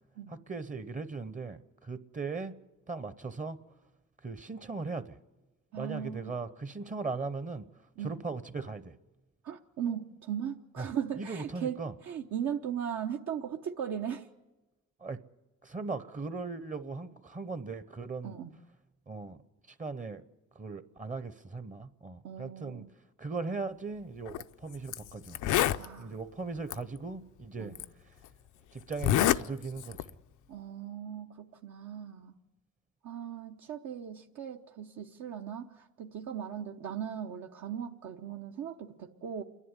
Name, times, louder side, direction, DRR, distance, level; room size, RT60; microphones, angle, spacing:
voice 1, 0.3-2.5 2.9-3.6 4.2-5.2 5.7-7.7 8.0-8.9 10.8-10.9 11.2-11.9 15.0-15.2 15.6-18.4 19.1-19.4 19.8-20.2 20.5-22.8 23.2-25.4 26.0-27.7 28.7-30.0, right 4 dB, 25° right, 0.8 m, -38 dB
voice 2, 5.7-6.4 8.0-8.2 9.4-14.3 18.2-18.5 22.2-22.9 25.8-26.2 27.6-27.8 30.5-32.4 33.0-39.4, right 8 dB, 65° right, 1.0 m, -38 dB
Zipper (clothing), 24.3-24.4 24.9-25.0 25.3-25.8 26.7-26.8 27.7-27.8 28.9-29.4 29.8-30.1, left 12 dB, 85° left, 0.6 m, -26 dB
28.0 x 11.0 x 9.7 m
cardioid pair, 90°, 30 cm